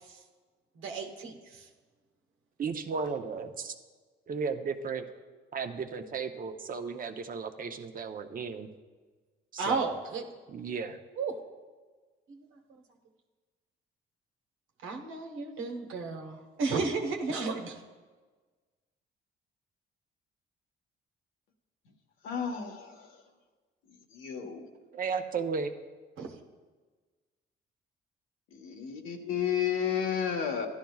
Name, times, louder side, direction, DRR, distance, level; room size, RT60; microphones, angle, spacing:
voice 1, 0.8-1.7 9.6-10.2 11.2-11.3 12.3-12.4 14.8-17.8 26.2-26.3, right 4 dB, 90° right, 3 dB, 1.3 m, -33 dB
voice 2, 2.6-3.7 4.3-5.1 5.5-8.7 9.5-9.9 10.5-11.0 24.9-25.7, right 5 dB, 45° right, 6 dB, 0.8 m, -34 dB
voice 3, 22.2-23.2 23.9-24.7 28.5-30.7, left 8 dB, 90° left, 3 dB, 1.3 m, -32 dB
15.0 x 11.5 x 2.4 m, 1.4 s
cardioid pair, 90°, 20 cm